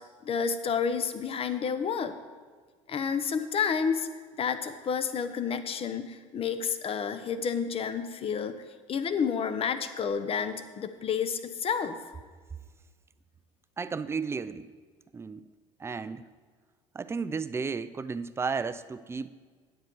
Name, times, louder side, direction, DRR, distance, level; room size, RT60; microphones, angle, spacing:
voice 1, 0.2-2.1 2.9-4.1 4.4-8.6 8.9-12.0, left 6 dB, 35° left, 11 dB, 0.8 m, -30 dB
voice 2, 13.8-14.7 15.1-15.5 15.8-16.2 16.9-19.3, right 5 dB, 15° right, 13 dB, 0.4 m, -33 dB
9.6 x 7.9 x 4.6 m, 1.5 s
supercardioid pair, 95°, 16 cm